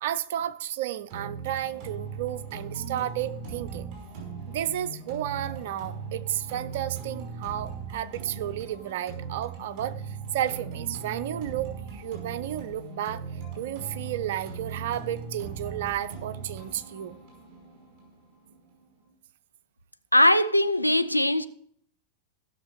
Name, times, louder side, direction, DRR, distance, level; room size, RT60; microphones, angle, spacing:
voice 1, 0.0-3.9 4.5-13.2 13.5-17.2, right 11 dB, 55° right, 0.6 m, -32 dB
sound 1, 1.1-19.1, right 5 dB, 35° right, 5.3 m, -39 dB
voice 2, 20.1-21.5, left 1 dB, 90° left, 0.5 m, -20 dB
16.0 x 6.5 x 4.8 m
figure-of-eight pair, 90°, 0 cm